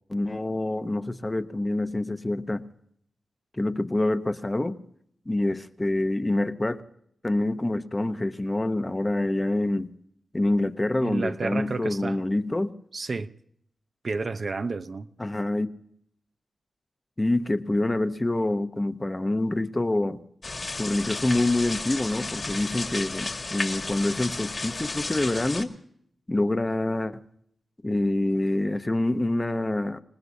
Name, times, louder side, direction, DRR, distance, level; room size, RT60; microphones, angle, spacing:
voice 1, 0.1-2.6 3.6-4.8 5.3-6.8 7.2-9.9 10.3-12.7 15.2-15.7 17.2-20.2 20.8-25.8 26.3-27.2 27.8-30.0, left 2 dB, 20° left, 0.9 m, -26 dB
voice 2, 11.0-12.2 12.9-13.3 14.0-15.1, right 3 dB, 45° right, 0.6 m, -30 dB
sound 1, 20.4-25.6, left 3 dB, 40° left, 1.8 m, -33 dB
26.5 x 19.5 x 2.7 m
wide cardioid pair, 100°, 0 cm